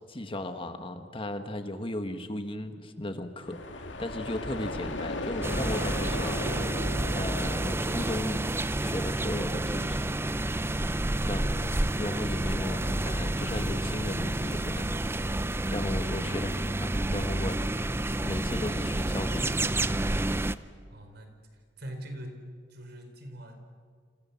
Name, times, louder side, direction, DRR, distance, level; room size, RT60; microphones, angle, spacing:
voice 1, 0.1-6.6 7.1-8.5 8.8-10.1 11.3-14.9 15.7-17.6 17.9-18.0 18.2-19.7, left 1 dB, 30° left, 7 dB, 1.6 m, -36 dB
sound 1, 3.4-9.2, left 2 dB, 85° left, 2.2 m, -37 dB
sound 2, 5.4-20.6, right 1 dB, 15° right, 0.6 m, -29 dB
voice 2, 11.2-11.5 20.9-22.4 22.7-23.6, equal, 60° right, 5 dB, 4.4 m, -44 dB
28.5 x 27.0 x 7.2 m, 2.1 s
head